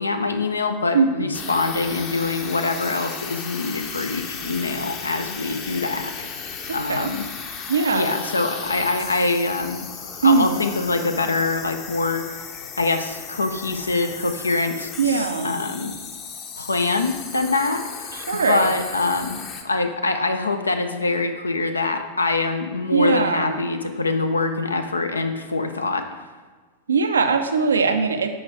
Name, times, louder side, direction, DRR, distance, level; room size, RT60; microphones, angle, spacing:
voice 1, 0.0-7.3 7.9-9.8 10.2-12.3 12.8-15.9 16.6-26.3, left 3 dB, 80° left, 6 dB, 0.5 m, -24 dB
voice 2, 0.9-1.3 6.7-7.1 7.7-8.1 10.2-10.6 15.0-15.6 18.1-18.7 22.9-23.6 26.9-28.3, right 4 dB, 70° right, 7 dB, 0.5 m, -21 dB
sound 1, 1.3-19.6, left 6 dB, 35° left, 0.8 m, -35 dB
6.3 x 5.1 x 4.5 m, 1.4 s
figure-of-eight pair, 90°, 0 cm